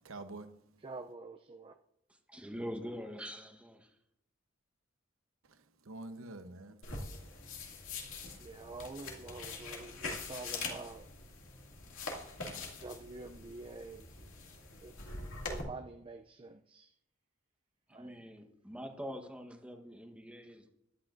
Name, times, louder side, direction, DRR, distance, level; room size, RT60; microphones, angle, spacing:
voice 1, 0.0-0.7 5.4-6.9, right 2 dB, 80° right, 0.9 m, -47 dB
voice 2, 0.8-1.8 8.3-11.1 12.7-14.3 14.8-15.0 15.4-16.9 17.9-18.2, right 3 dB, 25° right, 0.4 m, -47 dB
voice 3, 2.1-4.0 17.9-20.7, equal, 5° right, 1.2 m, -44 dB
sound 1, 6.8-15.6, left 3 dB, 80° left, 2.3 m, -44 dB
15.0 x 11.5 x 2.6 m
head